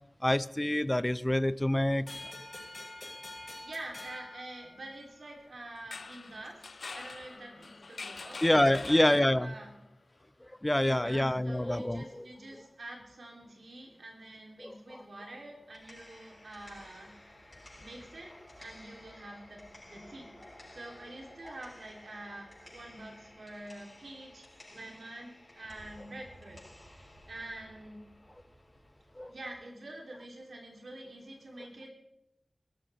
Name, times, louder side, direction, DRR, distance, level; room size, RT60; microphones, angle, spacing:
voice 1, 0.2-2.1 8.4-9.5 10.6-12.2 14.6-15.0 29.2-29.3, left 1 dB, 15° left, 17 dB, 0.4 m, -27 dB
sound 1, 2.1-5.3, left 2 dB, 55° left, 6.8 m, -46 dB
voice 2, 3.4-6.6 6.9-8.4 8.8-9.7 10.8-17.1 17.8-18.3 18.6-20.3 20.7-26.6 26.9-28.0 29.3-31.9, right 1 dB, 85° right, 0 dB, 3.3 m, -47 dB
sound 2, 5.8-9.6, left 4 dB, 85° left, 0.5 m, -45 dB
sound 3, 15.5-29.5, left 1 dB, 35° left, 6.5 m, -54 dB
22.0 x 13.0 x 3.5 m, 0.91 s
wide cardioid pair, 75°, 0 cm